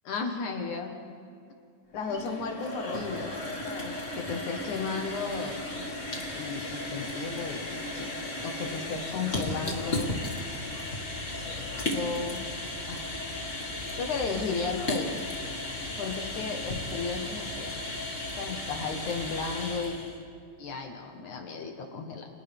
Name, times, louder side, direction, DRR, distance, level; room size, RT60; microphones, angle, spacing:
voice 1, 0.0-1.0 1.9-3.3 3.6-5.6 6.3-10.1 10.7-10.8 11.9-12.4 12.9-13.1 14.0-15.2 16.0-17.8 18.4-19.9 20.6-22.3, left 4 dB, 55° left, 3 dB, 2.3 m, -34 dB
sound 1, 1.9-20.2, left 1 dB, 35° left, 1.1 m, -35 dB
30.0 x 27.5 x 3.7 m, 2.3 s
omnidirectional pair, 5.3 m